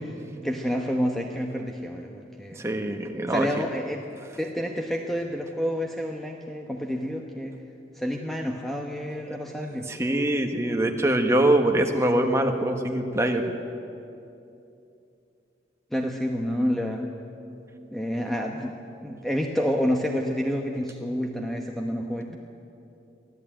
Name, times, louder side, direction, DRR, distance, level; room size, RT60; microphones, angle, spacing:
voice 1, 0.4-2.7 3.3-4.0 4.4-7.5 7.9-9.9 15.9-17.1 17.9-18.7 19.0-22.4, equal, ahead, 1 dB, 1.0 m, -29 dB
voice 2, 2.6-3.5 9.3-9.4 9.9-13.5, right 1 dB, 15° right, 4 dB, 1.4 m, -23 dB
23.5 x 15.0 x 8.9 m, 2.7 s
head